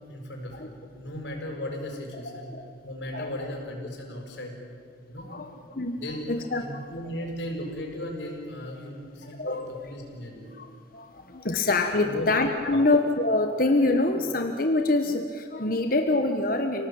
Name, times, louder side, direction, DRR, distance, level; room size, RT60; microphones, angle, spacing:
voice 1, 0.1-2.5 2.8-4.5 5.1-5.3 6.0-6.3 6.6-10.5 12.0-12.3 12.7-12.9, left 1 dB, 75° left, 1 dB, 6.3 m, -36 dB
voice 2, 3.1-3.5 5.2-6.0 6.3-6.6 9.2-9.9 10.5-10.7 10.9-16.9, left 2 dB, 50° left, 5 dB, 1.3 m, -25 dB
29.5 x 18.0 x 8.8 m, 2.4 s
head